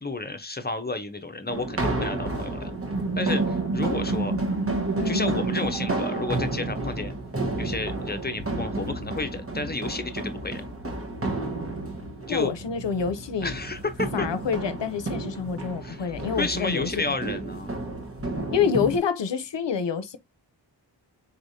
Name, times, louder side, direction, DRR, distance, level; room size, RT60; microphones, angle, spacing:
voice 1, 0.0-2.7 3.2-4.4 5.0-7.1 7.6-10.6 12.3-12.5 13.4-14.3 15.8-17.8, left 2 dB, 20° left, 0.8 m, -31 dB
sound 1, 1.5-19.0, right 2 dB, 30° right, 1.1 m, -32 dB
sound 2, 2.6-7.1, right 3 dB, 60° right, 0.9 m, -29 dB
voice 2, 5.0-5.5 12.3-13.6 14.1-17.2 18.5-20.2, left 6 dB, 70° left, 0.7 m, -27 dB
4.2 x 3.3 x 2.7 m
wide cardioid pair, 65°, 45 cm